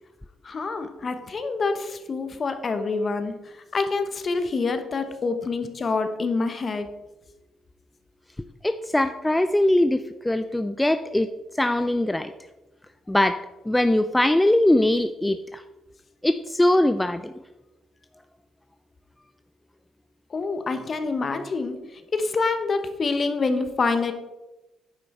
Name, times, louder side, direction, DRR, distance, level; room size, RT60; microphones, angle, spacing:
voice 1, 0.4-6.9 20.3-24.1, left 4 dB, 40° left, 8 dB, 1.0 m, -27 dB
voice 2, 8.6-11.3 11.6-12.3 13.1-13.4 13.7-15.6 16.2-17.3, left 1 dB, 10° left, 10 dB, 0.3 m, -21 dB
9.4 x 5.5 x 4.3 m, 1.0 s
cardioid pair, 90°, 0 cm